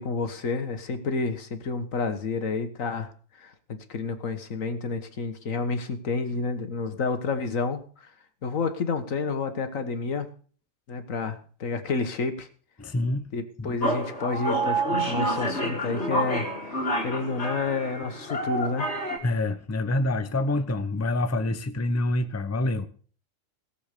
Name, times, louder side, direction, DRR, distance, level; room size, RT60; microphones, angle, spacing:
voice 1, 0.0-8.1 8.4-10.3 10.9-12.5 13.3-16.8 17.0-18.9, left 4 dB, 85° left, 9 dB, 1.8 m, -30 dB
voice 2, 12.8-13.8 19.2-22.9, left 2 dB, 15° left, 10 dB, 0.7 m, -27 dB
sound 1, 13.8-19.2, right 1 dB, 55° left, 3.4 m, -28 dB
17.5 x 7.2 x 6.8 m, 0.44 s
omnidirectional pair, 1.3 m